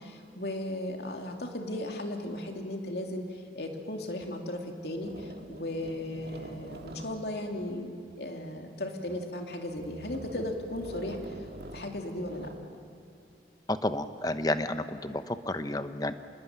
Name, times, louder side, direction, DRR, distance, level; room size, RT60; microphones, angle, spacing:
voice 1, 0.0-11.5 11.7-12.5, left 1 dB, 65° left, 3 dB, 2.9 m, -36 dB
sound 1, 4.2-4.3 5.0-8.2 8.8-9.3 9.7-12.7, right 1 dB, 60° right, 2.0 m, -46 dB
voice 2, 13.7-16.1, left 1 dB, 20° left, 10 dB, 0.9 m, -31 dB
27.0 x 20.5 x 9.5 m, 2.5 s
head